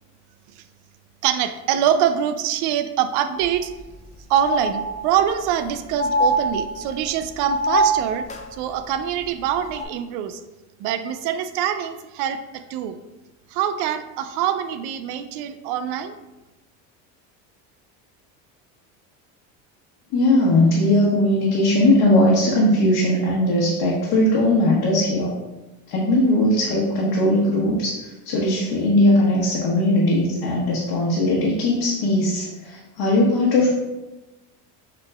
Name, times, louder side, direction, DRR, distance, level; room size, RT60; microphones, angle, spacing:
voice 1, 1.2-3.7 4.3-8.2 8.5-10.4 10.8-12.4 12.7-13.0 13.5-16.1, right 9 dB, 65° right, 10 dB, 0.5 m, -24 dB
sound 1, 3.4-3.5 3.8-3.9 4.4-5.3 6.0-7.0 7.5-8.4 9.7-9.8, right 1 dB, 20° left, 0.3 m, -23 dB
voice 2, 20.1-25.3 25.9-28.0 28.2-33.7, left 1 dB, 65° left, -5 dB, 1.2 m, -19 dB
5.8 x 3.0 x 2.3 m, 1.0 s
supercardioid pair, 100°, 42 cm